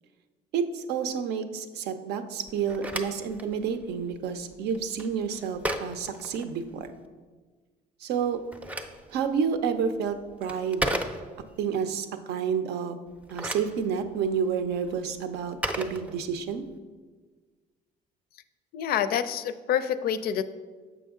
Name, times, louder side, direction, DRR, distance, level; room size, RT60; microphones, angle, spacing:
voice 1, 0.5-6.9 8.0-8.4 9.1-10.9 11.6-13.0 13.3-16.6, right 6 dB, 75° right, 9 dB, 0.6 m, -29 dB
Telephone, 2.5-7.0 8.2-11.6 13.1-16.7, right 1 dB, 10° right, 0.5 m, -36 dB
voice 2, 18.7-20.4, left 9 dB, 65° left, 12 dB, 0.4 m, -27 dB
7.0 x 5.5 x 3.6 m, 1.4 s
cardioid pair, 110°, 17 cm